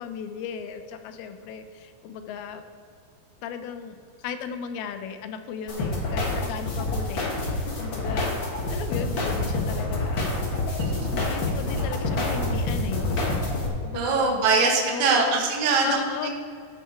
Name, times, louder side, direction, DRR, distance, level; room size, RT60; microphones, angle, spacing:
voice 1, 0.0-2.6 3.4-4.0 4.2-8.4 8.7-10.4 11.1-13.2 13.8-14.4 14.9-15.5 15.8-16.3, left 7 dB, 85° left, 8 dB, 2.6 m, -35 dB
sound 1, 5.7-13.7, left 2 dB, 50° left, 1.6 m, -27 dB
voice 2, 13.9-16.3, right 4 dB, 70° right, 0 dB, 3.1 m, -22 dB
14.5 x 6.5 x 4.5 m, 2.2 s
omnidirectional pair, 4.4 m